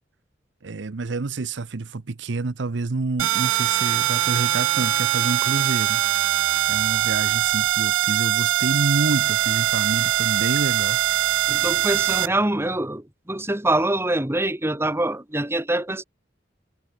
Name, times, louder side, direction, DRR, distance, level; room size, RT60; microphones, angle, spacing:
voice 1, 0.6-6.0 6.7-11.0, right 3 dB, 70° right, 0.7 m, -28 dB
sound 1, 3.2-12.3, right 13 dB, 85° right, 0.3 m, -22 dB
voice 2, 11.5-16.0, right 1 dB, 15° right, 1.4 m, -24 dB
head